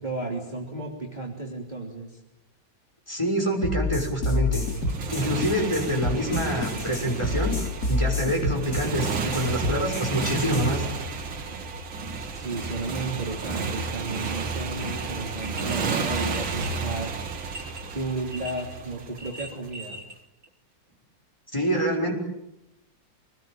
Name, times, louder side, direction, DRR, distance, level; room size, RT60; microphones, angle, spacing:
voice 1, 0.0-2.2 12.3-17.1 17.9-20.0, right 2 dB, 20° right, -1 dB, 3.4 m, -33 dB
voice 2, 3.1-4.6 5.1-7.6 7.9-10.9 21.5-22.1, equal, 15° left, 1 dB, 6.0 m, -26 dB
sound 1, 3.6-10.7, left 2 dB, 50° left, 3.9 m, -28 dB
Motorcycle, 4.5-19.7, right 4 dB, 80° right, 2.6 m, -32 dB
sound 2, 15.0-15.1 15.4-17.8 18.3-18.8 19.0-20.2 20.4-20.5, right 1 dB, 50° right, 4.0 m, -41 dB
26.5 x 20.0 x 9.1 m, 0.89 s
omnidirectional pair, 2.1 m